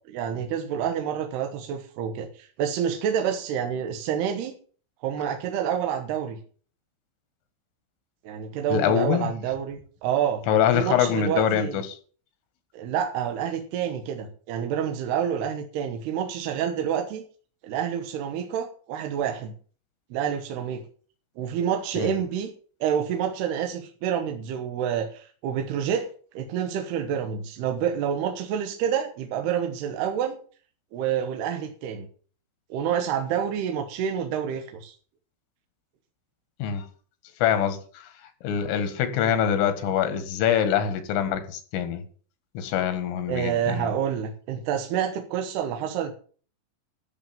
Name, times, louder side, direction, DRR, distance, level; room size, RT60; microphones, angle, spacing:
voice 1, 0.1-4.5 5.0-6.4 8.2-10.4 10.7-11.8 12.7-17.2 17.6-19.5 20.1-20.9 21.4-22.5 22.8-26.1 26.3-30.4 30.9-32.1 32.7-35.0 43.3-46.1, right 8 dB, 70° right, 2.8 m, -28 dB
voice 2, 8.7-9.3 10.5-11.9 22.0-22.1 36.6-36.9 37.4-38.1 38.4-42.0 42.6-43.9, left 9 dB, 85° left, 4.2 m, -24 dB
13.5 x 7.3 x 7.5 m
omnidirectional pair, 5.6 m